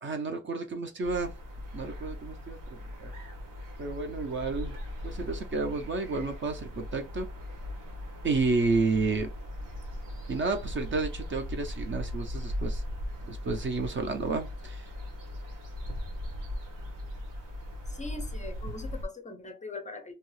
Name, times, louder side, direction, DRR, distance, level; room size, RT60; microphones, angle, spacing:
voice 1, 0.0-1.3 1.7-3.1 3.8-4.8 5.0-7.3 8.2-9.3 10.3-12.8 13.2-14.9, right 3 dB, 40° right, 0.4 m, -31 dB
sound 1, 1.0-19.1, left 1 dB, 85° right, 1.1 m, -38 dB
voice 2, 17.9-20.1, left 3 dB, 25° left, 0.4 m, -41 dB
2.7 x 2.3 x 3.1 m
wide cardioid pair, 170°, 32 cm